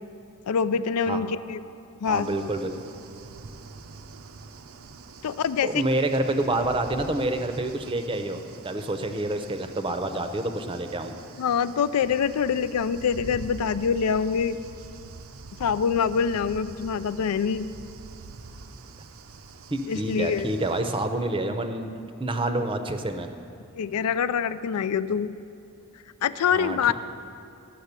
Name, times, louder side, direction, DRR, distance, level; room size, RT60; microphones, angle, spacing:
voice 1, 0.5-1.6 2.0-2.3 5.2-5.8 11.4-14.6 15.6-17.7 19.9-20.5 23.7-25.3 26.2-26.9, left 7 dB, 85° left, 14 dB, 0.4 m, -25 dB
sound 1, 2.0-20.8, right 3 dB, 65° right, 0.6 m, -45 dB
voice 2, 2.1-2.8 5.6-11.1 19.7-21.9 22.2-23.3 26.4-26.9, right 2 dB, 25° right, 7 dB, 0.6 m, -28 dB
12.0 x 6.4 x 8.1 m, 2.6 s
head